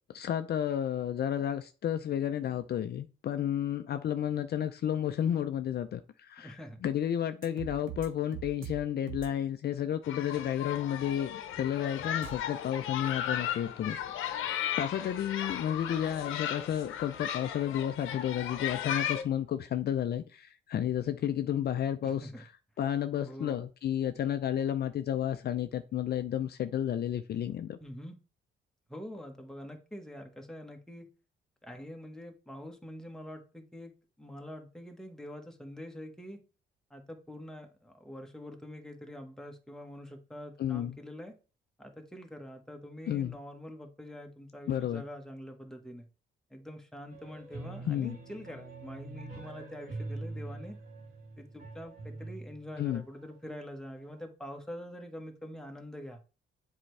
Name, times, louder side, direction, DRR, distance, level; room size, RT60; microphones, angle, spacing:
voice 1, 0.1-6.5 6.8-14.0 14.2-22.3 22.8-27.8 40.6-41.0 43.1-43.4 44.7-45.0 47.9-48.2 52.8-53.0, left 10 dB, 55° left, 9 dB, 0.5 m, -32 dB
voice 2, 6.4-6.8 22.0-22.4 23.2-23.6 27.8-28.1 28.9-31.1 31.6-33.9 34.2-36.4 36.9-41.3 41.8-46.1 46.5-50.8 51.4-56.2, equal, 5° left, 3 dB, 1.4 m, -45 dB
sound 1, 7.4-8.1 8.3-8.8 9.1-9.3 12.2-12.4, right 9 dB, 80° right, 1.1 m, -41 dB
sound 2, 10.0-19.2, left 10 dB, 85° left, 0.9 m, -36 dB
sound 3, 47.1-53.0, right 2 dB, 50° right, 3.1 m, -44 dB
7.5 x 4.6 x 3.3 m, 0.35 s
cardioid pair, 90°, 20 cm